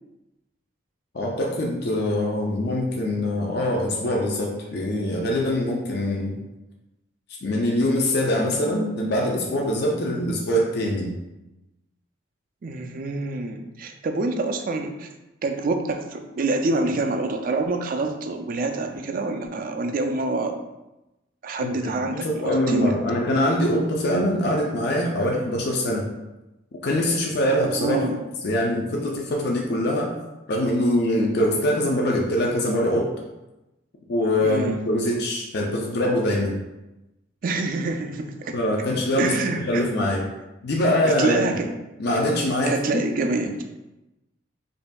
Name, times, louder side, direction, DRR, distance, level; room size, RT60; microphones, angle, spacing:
voice 1, 1.1-6.4 7.4-11.1 21.6-21.9 22.2-26.0 26.8-28.0 28.4-30.1 30.5-33.1 34.1-36.6 38.5-39.3 39.7-40.2 40.6-41.6 42.0-43.0, left 1 dB, 50° left, -1 dB, 0.5 m, -23 dB
voice 2, 12.6-15.1 15.4-20.6 21.4-23.0 27.8-28.2 34.4-34.8 37.4-38.6 39.2-39.9 41.1-41.7 42.7-43.6, right 3 dB, 40° right, 5 dB, 0.3 m, -26 dB
5.2 x 2.6 x 2.3 m, 0.99 s
head